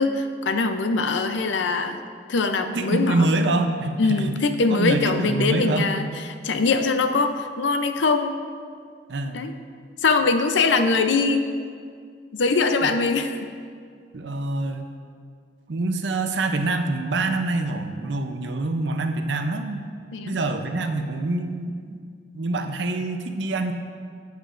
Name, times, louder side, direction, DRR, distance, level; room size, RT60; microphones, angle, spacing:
voice 1, 0.0-2.0 2.3-3.3 4.0-6.1 6.4-8.4 9.3-9.5 10.0-11.5 12.3-13.4 20.1-20.4, left 3 dB, 90° left, 8 dB, 0.6 m, -22 dB
voice 2, 2.7-4.4 4.7-5.9 9.1-9.4 12.8-12.9 14.1-14.9 15.7-19.8 20.3-22.0 22.3-23.7, right 2 dB, 75° right, 6 dB, 0.6 m, -25 dB
13.0 x 8.2 x 2.6 m, 2.1 s
head